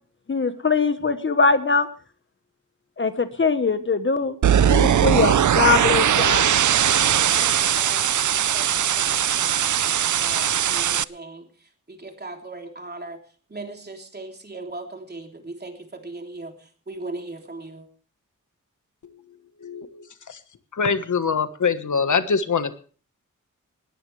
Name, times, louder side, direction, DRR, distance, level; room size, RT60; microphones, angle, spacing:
voice 1, 0.3-1.9 3.0-4.4 4.7-6.5, left 4 dB, 40° left, 10 dB, 1.2 m, -21 dB
sound 1, 4.4-11.0, right 9 dB, 70° right, 0.6 m, -20 dB
voice 2, 7.4-11.4 11.9-13.2 13.5-17.9, right 2 dB, 30° right, 3 dB, 3.4 m, -38 dB
voice 3, 20.8-22.7, left 5 dB, 70° left, 10 dB, 1.4 m, -23 dB
20.0 x 14.0 x 3.3 m, 0.40 s
wide cardioid pair, 110°, 31 cm